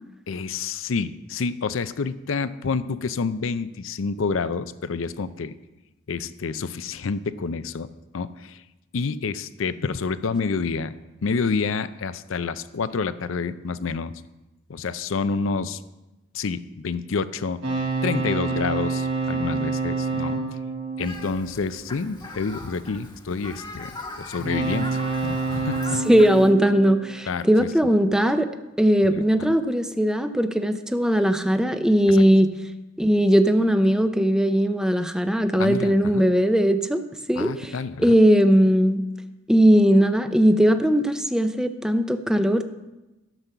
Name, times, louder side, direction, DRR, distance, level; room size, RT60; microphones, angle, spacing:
voice 1, 0.3-5.5 6.1-7.9 8.1-8.6 8.9-10.9 11.2-14.1 14.7-15.8 16.3-17.6 18.0-20.4 21.0-23.9 24.2-26.0 27.3-27.7 29.0-29.2 32.1-32.2 35.6-36.2 37.4-38.1, left 4 dB, 75° left, 14 dB, 0.5 m, -28 dB
sound 1, 17.6-22.0 24.4-27.6, right 4 dB, 80° right, 2.8 m, -28 dB
Fowl, 21.0-26.5, left 2 dB, 25° left, 1.1 m, -41 dB
voice 2, 26.1-28.5 28.8-32.5 33.0-37.0 37.3-37.7 38.0-39.0 39.5-42.6, equal, 5° right, 8 dB, 0.6 m, -19 dB
12.0 x 6.0 x 6.7 m, 1.0 s
head